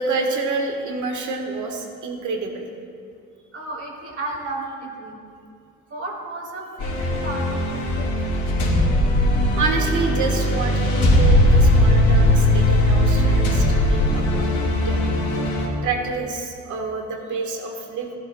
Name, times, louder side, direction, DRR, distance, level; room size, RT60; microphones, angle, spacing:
voice 1, 0.0-2.7 9.5-15.1 15.8-18.1, right 3 dB, 80° right, 2 dB, 1.6 m, -28 dB
voice 2, 3.5-5.2 5.9-8.1, right 2 dB, 50° right, -2 dB, 2.5 m, -33 dB
sound 1, 6.8-15.7, left 1 dB, 70° left, 2.7 m, -19 dB
15.0 x 11.5 x 2.3 m, 2.4 s
cardioid pair, 90°, 30 cm